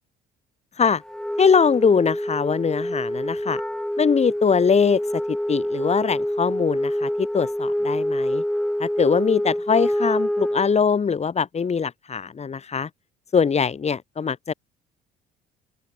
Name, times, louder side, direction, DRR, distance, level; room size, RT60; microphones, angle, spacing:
Wind instrument woodwind instrument, 1.0-10.8, equal, 5° left, 7.0 m, -26 dB
voice 1, 1.4-3.6 4.0-8.4 8.8-12.9 13.3-14.5, left 6 dB, 35° left, 1.6 m, -22 dB
open air
hypercardioid pair, 55°, 20 cm